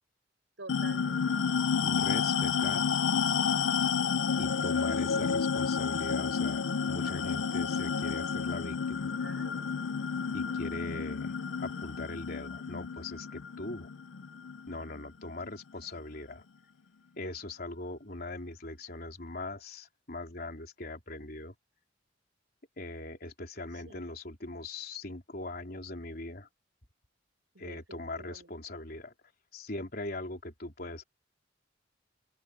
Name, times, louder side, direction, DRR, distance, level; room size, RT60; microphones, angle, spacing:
voice 1, 0.6-1.4 5.0-5.5 9.2-9.6 23.8-24.0 27.5-28.5, right 3 dB, 85° right, 6.7 m, -49 dB
sound 1, 0.7-15.5, left 6 dB, 85° left, 0.5 m, -31 dB
voice 2, 1.8-2.9 4.4-9.1 10.3-13.9 14.7-16.4 17.2-21.5 22.8-26.5 27.6-29.1 29.5-31.0, left 2 dB, 55° left, 3.6 m, -41 dB
open air
head